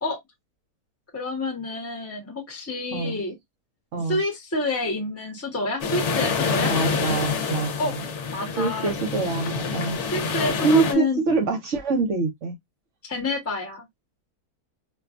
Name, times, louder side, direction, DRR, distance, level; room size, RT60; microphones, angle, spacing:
voice 1, 1.1-3.3 4.1-6.7 7.8-8.9 10.1-11.2 13.0-13.8, left 2 dB, 10° left, 0.8 m, -28 dB
sound 1, 5.8-10.9, left 5 dB, 55° left, 1.0 m, -27 dB
voice 2, 6.7-8.0 8.6-10.0 10.6-12.6, right 4 dB, 55° right, 1.0 m, -25 dB
4.4 x 2.3 x 2.4 m
omnidirectional pair, 1.7 m